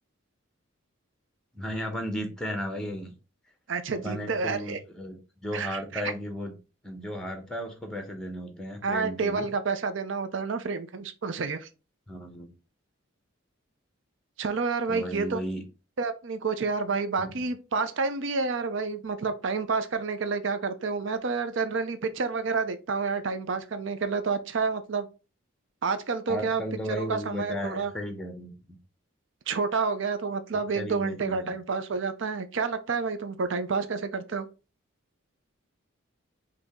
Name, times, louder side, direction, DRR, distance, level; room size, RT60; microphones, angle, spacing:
voice 1, 1.5-3.1 3.9-6.5 6.8-9.5 12.1-12.5 14.9-15.6 17.2-17.4 26.3-28.5 30.8-31.5, equal, 5° left, 1.0 m, -35 dB
voice 2, 3.7-4.8 5.5-6.1 8.8-11.7 14.4-15.4 16.0-25.1 25.8-26.6 26.9-27.9 29.5-34.5, right 4 dB, 65° right, 0.6 m, -29 dB
5.0 x 2.9 x 3.6 m
head